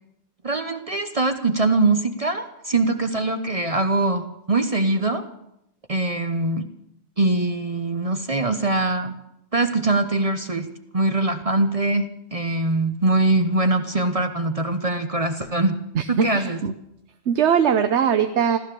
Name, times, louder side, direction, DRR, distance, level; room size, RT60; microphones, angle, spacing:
voice 1, 0.4-5.2 5.9-6.6 7.2-9.1 9.5-10.7 10.9-15.8 16.1-16.6, right 2 dB, 35° right, 8 dB, 0.9 m, -22 dB
voice 2, 16.2-16.7 17.3-18.6, right 7 dB, 85° right, 8 dB, 1.1 m, -20 dB
15.5 x 13.0 x 6.8 m, 0.80 s
omnidirectional pair, 1.1 m